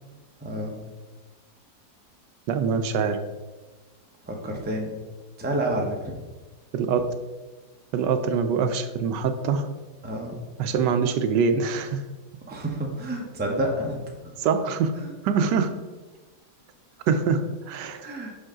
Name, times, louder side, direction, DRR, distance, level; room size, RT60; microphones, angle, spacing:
voice 1, 0.4-0.8 4.2-4.9 5.4-6.1 10.0-10.4 12.5-14.0 14.2-14.3 15.0-15.1 18.0-18.3, right 1 dB, 10° right, 0 dB, 0.5 m, -29 dB
voice 2, 2.5-3.2 6.7-7.0 7.9-9.7 10.6-12.0 14.4-14.9 15.2-15.7 17.1-18.0, right 6 dB, 80° right, 8 dB, 1.2 m, -24 dB
6.1 x 5.3 x 3.7 m, 1.2 s
omnidirectional pair, 1.9 m